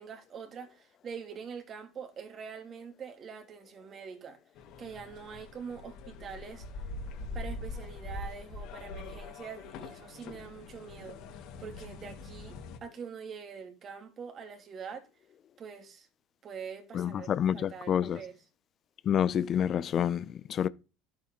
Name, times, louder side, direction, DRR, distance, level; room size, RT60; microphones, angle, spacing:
voice 1, 0.0-4.4 4.8-6.9 7.2-11.2 11.6-15.1 15.6-16.1 16.4-18.4, right 6 dB, 40° right, 3.0 m, -44 dB
sound 1, 4.6-12.8, left 2 dB, 60° left, 3.0 m, -43 dB
voice 2, 16.9-18.2 19.1-20.7, left 9 dB, 45° left, 0.7 m, -28 dB
11.5 x 8.7 x 3.9 m
supercardioid pair, 95°, 0 cm